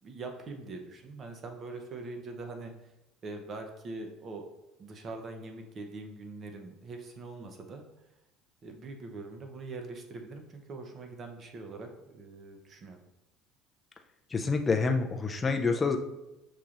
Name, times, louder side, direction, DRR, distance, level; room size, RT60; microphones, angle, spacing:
voice 1, 0.0-2.7 3.2-4.5 4.8-7.8 8.6-13.0, right 3 dB, 35° right, 4 dB, 0.7 m, -43 dB
voice 2, 14.3-16.0, left 4 dB, 20° left, 3 dB, 0.4 m, -27 dB
6.6 x 2.9 x 2.4 m, 0.96 s
cardioid pair, 130°, 0 cm